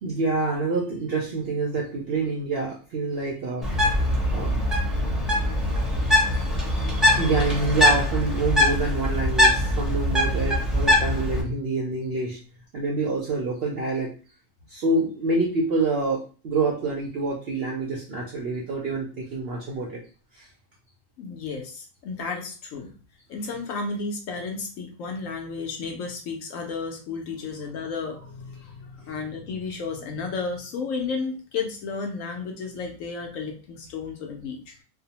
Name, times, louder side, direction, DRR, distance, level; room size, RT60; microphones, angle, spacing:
voice 1, 0.0-3.7 4.3-4.5 7.2-12.4 12.7-14.1 14.7-20.0 20.3-20.5, right 3 dB, 65° right, -2 dB, 0.6 m, -27 dB
Bird, 3.6-11.4, left 1 dB, ahead, 0.4 m, -22 dB
voice 2, 21.2-22.9 23.3-34.6, left 4 dB, 70° left, 3 dB, 0.9 m, -33 dB
2.6 x 2.0 x 2.8 m, 0.37 s
omnidirectional pair, 1.5 m